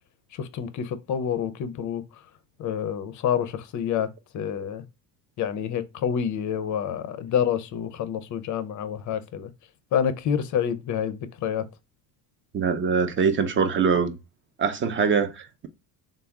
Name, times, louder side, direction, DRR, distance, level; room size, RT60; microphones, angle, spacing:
voice 1, 0.4-2.0 2.6-4.1 4.3-4.8 5.4-9.5 9.9-11.6, left 8 dB, 40° left, 0.5 m, -28 dB
voice 2, 12.5-14.2 14.6-15.7, right 5 dB, 25° right, 0.4 m, -23 dB
3.4 x 2.0 x 3.4 m
supercardioid pair, 90°, 48 cm